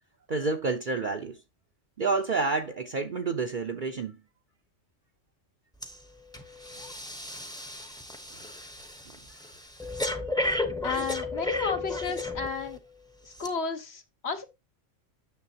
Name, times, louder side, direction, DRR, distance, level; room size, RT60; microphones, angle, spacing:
voice 1, 0.3-1.4 2.0-4.2, right 4 dB, 45° right, 0.8 m, -29 dB
Breathing, 5.8-6.0 6.3-12.8 13.3-13.5, left 2 dB, 5° left, 0.9 m, -34 dB
voice 2, 10.8-12.8 13.2-14.4, left 5 dB, 55° left, 1.4 m, -32 dB
9.5 x 6.7 x 2.8 m
omnidirectional pair, 1.3 m